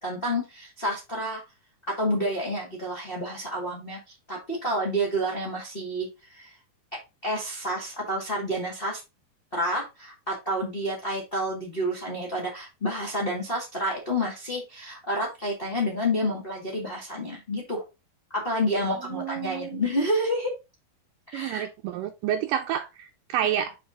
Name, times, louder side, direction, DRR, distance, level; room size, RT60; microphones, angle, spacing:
voice 1, 0.0-1.4 1.9-4.0 4.3-6.5 7.2-9.0 9.5-17.8 18.3-20.5 21.3-21.7, equal, 25° left, 1.1 m, -29 dB
voice 2, 19.0-19.8 21.3-23.8, right 10 dB, 80° right, 2.2 m, -29 dB
5.7 x 4.8 x 3.6 m
omnidirectional pair, 4.0 m